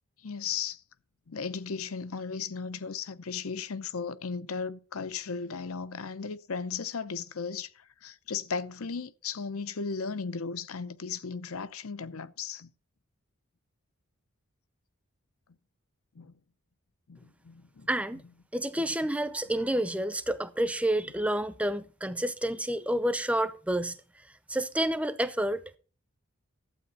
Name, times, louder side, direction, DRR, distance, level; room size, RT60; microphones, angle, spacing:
voice 1, 0.2-0.8 1.3-12.7 16.2-16.3 17.1-17.9 18.8-18.9, left 5 dB, 75° left, 0.7 m, -36 dB
voice 2, 17.9-18.2 18.5-24.0 24.5-25.8, right 1 dB, 5° right, 0.6 m, -29 dB
12.0 x 8.6 x 4.2 m
head